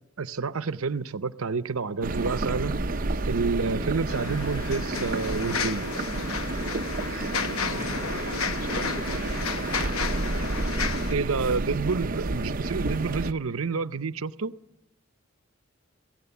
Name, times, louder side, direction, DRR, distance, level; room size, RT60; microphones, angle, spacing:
voice 1, 0.2-2.8 3.3-5.9 11.1-14.5, right 4 dB, 80° right, 0.7 m, -29 dB
sound 1, 2.0-13.3, right 2 dB, 40° right, 0.7 m, -30 dB
voice 2, 3.6-3.9 7.0-9.5, left 2 dB, 40° left, 1.7 m, -44 dB
sound 2, 4.1-11.1, left 5 dB, 90° left, 0.9 m, -32 dB
27.0 x 17.0 x 7.1 m
head